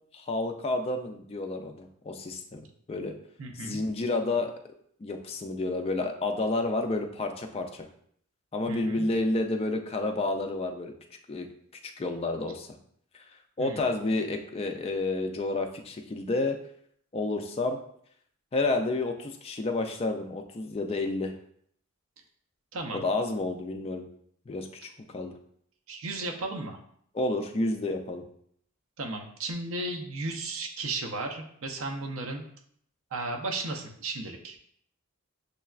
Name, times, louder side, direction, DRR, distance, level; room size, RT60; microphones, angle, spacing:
voice 1, 0.1-3.1 3.6-4.5 5.0-7.9 8.5-10.9 11.3-11.5 12.0-12.7 13.1-13.2 13.6-16.6 17.1-17.8 18.5-21.3 22.9-24.1 24.5-25.3 27.1-28.2, left 2 dB, 25° left, 5 dB, 0.3 m, -30 dB
voice 2, 3.4-3.8 8.7-9.1 13.6-13.8 22.7-23.1 25.9-26.8 29.0-32.4 33.1-34.6, right 2 dB, 65° right, 2 dB, 0.5 m, -35 dB
6.5 x 2.2 x 2.3 m, 0.67 s
head